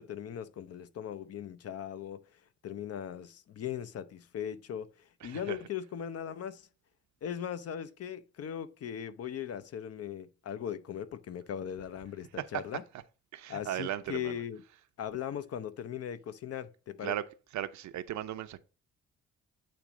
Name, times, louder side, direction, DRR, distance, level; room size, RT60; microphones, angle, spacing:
voice 1, 0.0-2.2 2.6-6.7 7.2-12.8 13.5-14.6 15.0-17.2, left 9 dB, 55° left, 0.6 m, -39 dB
voice 2, 5.2-5.6 12.4-12.5 13.3-14.4 17.0-17.2 17.5-18.6, right 12 dB, 70° right, 0.7 m, -36 dB
8.6 x 3.0 x 4.8 m
cardioid pair, 90°, 30 cm